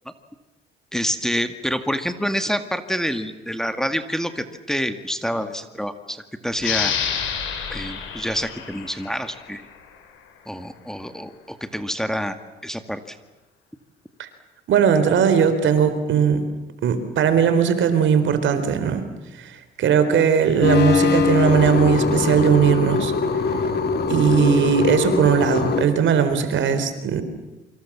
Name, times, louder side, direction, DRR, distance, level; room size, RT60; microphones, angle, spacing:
voice 1, 0.9-6.9 7.7-9.7 10.5-12.4 12.6-13.2, equal, ahead, 8 dB, 2.1 m, -27 dB
sound 1, 6.6-9.8, left 7 dB, 85° left, 5.2 m, -28 dB
voice 2, 14.7-16.4 16.8-19.0 19.4-23.1 24.1-27.2, right 7 dB, 75° right, 10 dB, 4.0 m, -19 dB
sound 2, 20.6-25.8, left 5 dB, 55° left, 3.7 m, -22 dB
28.0 x 25.5 x 7.5 m, 1.1 s
cardioid pair, 90°, 20 cm